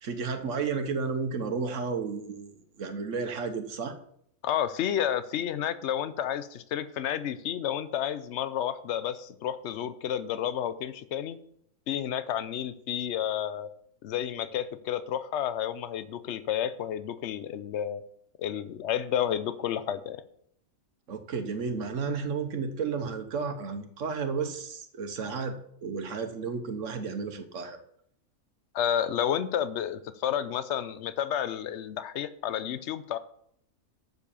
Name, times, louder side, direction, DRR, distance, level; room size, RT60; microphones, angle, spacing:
voice 1, 0.0-2.5 2.8-4.0 21.1-27.8, right 5 dB, 60° right, 8 dB, 1.3 m, -32 dB
voice 2, 4.4-11.4 11.9-13.7 14.0-18.0 18.4-20.2 28.7-33.2, left 10 dB, 60° left, 13 dB, 0.9 m, -31 dB
7.4 x 6.8 x 6.9 m, 0.69 s
omnidirectional pair, 1.5 m